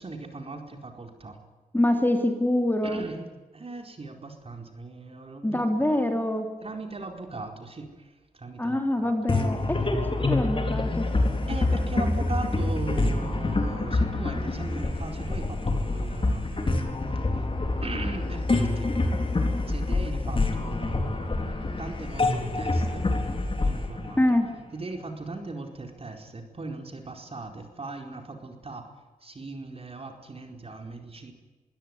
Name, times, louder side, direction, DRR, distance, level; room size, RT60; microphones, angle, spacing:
voice 1, 0.0-1.4 2.8-3.3 3.5-6.1 6.6-9.2 11.5-16.9 17.3-17.5 17.8-18.9 19.7-23.2 23.6-24.2 24.7-28.9 29.2-31.3, right 3 dB, 40° right, 4 dB, 4.5 m, -39 dB
voice 2, 1.7-3.0 5.4-6.5 8.6-9.8 10.1-11.1 24.2-24.4, left 1 dB, 15° left, 5 dB, 3.0 m, -25 dB
sound 1, 9.3-24.9, left 2 dB, 35° left, 4.0 m, -26 dB
23.0 x 16.5 x 9.6 m, 1.3 s
wide cardioid pair, 80°, 14 cm